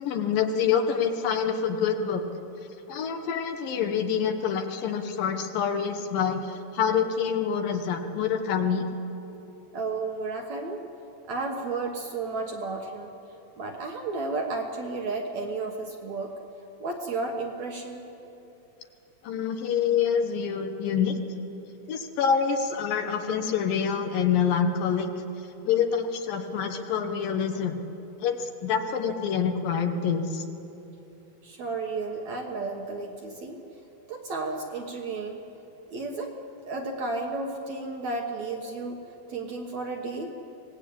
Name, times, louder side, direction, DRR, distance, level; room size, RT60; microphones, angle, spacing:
voice 1, 0.0-2.2 2.9-8.9 19.2-21.2 21.9-25.1 25.7-27.8 28.2-30.4, left 7 dB, 70° left, 6 dB, 2.6 m, -26 dB
voice 2, 9.7-10.8 11.3-13.1 13.6-16.3 16.8-18.1 31.4-33.6 34.1-35.4 35.9-36.3 36.7-39.0 39.3-40.3, right 3 dB, 60° right, 2 dB, 2.1 m, -32 dB
25.0 x 19.0 x 8.6 m, 3.0 s
omnidirectional pair, 4.6 m